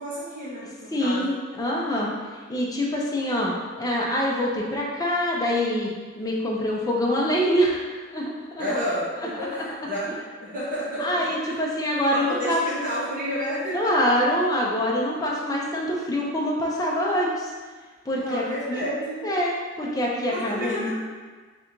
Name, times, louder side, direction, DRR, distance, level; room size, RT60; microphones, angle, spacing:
voice 1, 0.0-1.3 8.6-11.3 12.1-13.9 18.2-19.2 20.3-20.9, equal, 45° right, -9 dB, 1.2 m, -30 dB
voice 2, 0.9-2.1 2.5-5.9 6.2-7.9 8.1-8.6 9.5-9.6 11.0-12.6 13.7-17.5 18.1-18.8 19.2-20.9, equal, 20° left, -3 dB, 0.6 m, -25 dB
3.4 x 2.6 x 4.4 m, 1.4 s
head